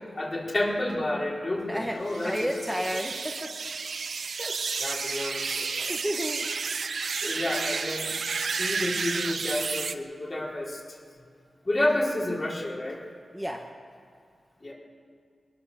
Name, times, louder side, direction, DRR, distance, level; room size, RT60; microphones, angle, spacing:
voice 1, 0.1-2.4 4.8-5.9 7.2-10.8 11.6-13.0 14.6-14.7, left 1 dB, 40° left, -4 dB, 4.5 m, -30 dB
voice 2, 1.7-3.5 4.4-4.5 5.9-6.5 7.3-7.6 13.3-13.6, equal, ahead, 0 dB, 1.5 m, -32 dB
sound 1, 2.1-9.9, right 5 dB, 70° right, 0.7 m, -31 dB
22.0 x 20.0 x 7.2 m, 2.3 s
wide cardioid pair, 80°, 0 cm